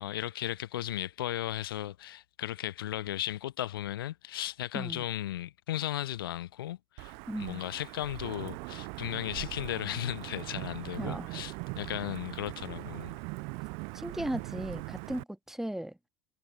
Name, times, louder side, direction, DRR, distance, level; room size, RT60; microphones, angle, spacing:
voice 1, 0.0-13.2, left 13 dB, 70° left, 0.6 m, -36 dB
Wind / Thunder / Rain, 7.0-15.2, right 35 dB, 50° right, 0.4 m, -41 dB
voice 2, 7.3-7.6 11.0-11.3 13.9-16.0, right 1 dB, 5° right, 1.2 m, -36 dB
figure-of-eight pair, 70°, 12 cm